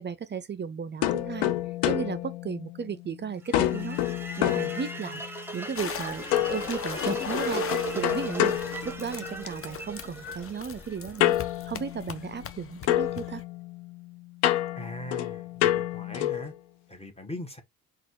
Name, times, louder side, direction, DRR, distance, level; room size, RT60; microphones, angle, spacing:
voice 1, 0.0-1.5 1.8-4.0 4.4-5.2 5.5-7.6 7.9-8.6 8.8-11.4 11.7-13.4, right 6 dB, 25° right, 0.5 m, -35 dB
sound 1, 1.0-3.1 3.5-5.4 6.3-9.5 11.2-12.6 12.9-16.5, left 13 dB, 65° left, 0.7 m, -29 dB
sound 2, 3.5-11.6, right 2 dB, 5° right, 1.3 m, -38 dB
sound 3, 5.8-13.4, left 7 dB, 30° left, 0.7 m, -39 dB
voice 2, 14.8-16.5 16.9-17.6, left 1 dB, 15° left, 1.4 m, -40 dB
4.0 x 2.5 x 4.6 m
hypercardioid pair, 50°, 45 cm